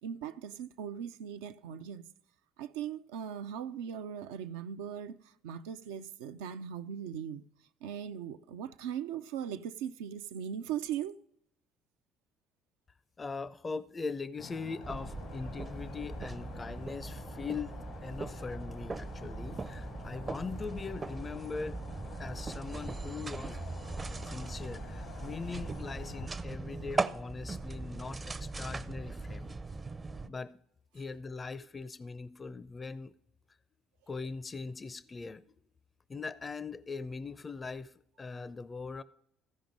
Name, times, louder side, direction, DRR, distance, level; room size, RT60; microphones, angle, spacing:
voice 1, 0.0-2.1 2.6-7.4 7.8-11.2, right 9 dB, 85° right, 0.4 m, -39 dB
voice 2, 13.2-21.8 22.2-23.6 24.2-29.6 30.2-30.6 30.9-33.1 34.1-35.4 36.1-39.0, left 4 dB, 30° left, 0.4 m, -41 dB
sound 1, 14.4-26.3, left 7 dB, 75° left, 0.9 m, -50 dB
sound 2, 14.8-30.3, right 3 dB, 30° right, 0.5 m, -39 dB
14.5 x 5.2 x 5.2 m
hypercardioid pair, 65°, 0 cm